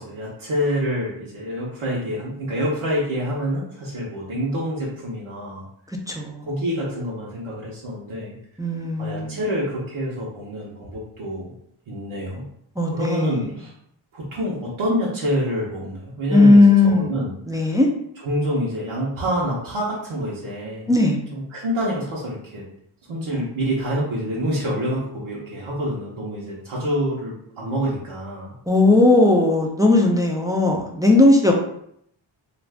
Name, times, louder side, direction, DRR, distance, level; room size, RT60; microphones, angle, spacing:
voice 1, 0.0-5.6 6.4-8.4 9.0-11.5 11.9-12.4 12.9-13.7 14.1-17.7 18.2-20.9 21.3-22.6 23.1-28.5, equal, 80° right, -5 dB, 0.8 m, -27 dB
voice 2, 6.1-6.5 8.6-9.4 12.8-13.4 16.3-17.1 17.5-17.9 20.9-21.2 23.3-23.4 28.7-31.5, left 2 dB, 10° right, 0 dB, 0.3 m, -17 dB
2.5 x 2.3 x 3.4 m, 0.70 s
wide cardioid pair, 85°, 48 cm